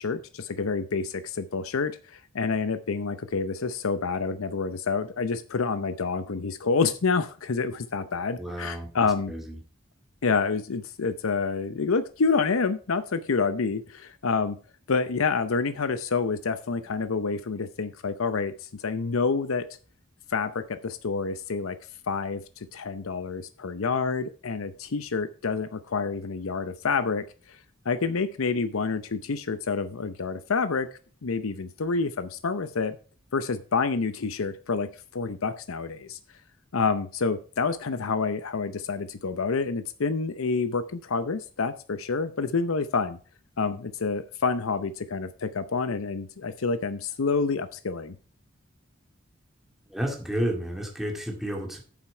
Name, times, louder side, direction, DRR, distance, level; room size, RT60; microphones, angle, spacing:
voice 1, 0.0-9.3 10.2-14.6 14.9-19.7 20.3-21.8 22.1-27.6 27.8-30.9 31.2-33.0 33.3-34.9 35.1-36.2 36.7-43.2 43.6-48.2, left 4 dB, 85° left, 11 dB, 0.7 m, -28 dB
voice 2, 8.4-9.6 49.9-51.8, right 1 dB, ahead, 1 dB, 2.0 m, -31 dB
9.2 x 7.3 x 4.4 m, 0.39 s
head